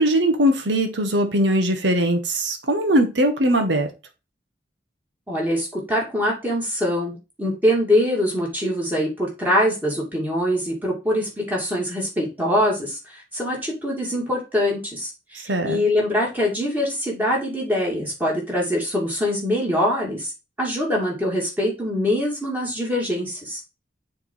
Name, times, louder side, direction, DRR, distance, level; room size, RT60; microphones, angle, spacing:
voice 1, 0.0-3.9 15.5-15.8, right 1 dB, 80° right, 1.4 m, -20 dB
voice 2, 5.3-20.3 20.6-23.6, left 1 dB, 10° right, 2.5 m, -23 dB
6.8 x 3.8 x 4.6 m
head